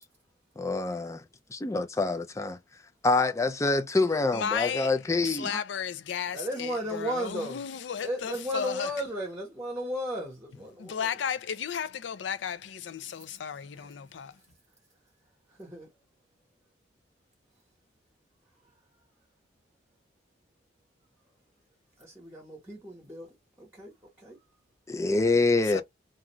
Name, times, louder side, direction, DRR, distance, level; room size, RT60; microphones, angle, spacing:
voice 1, 0.6-1.2 1.5-2.6 3.0-5.6 24.9-25.8, left 3 dB, 15° left, 0.4 m, -26 dB
voice 2, 4.3-4.9 5.4-8.9 10.8-14.3 25.7-25.8, left 7 dB, 75° left, 0.4 m, -34 dB
voice 3, 6.3-7.6 8.0-11.2 15.6-15.9 22.0-23.3 23.6-23.9 24.2-24.4, equal, 10° right, 1.0 m, -34 dB
2.6 x 2.3 x 3.0 m
head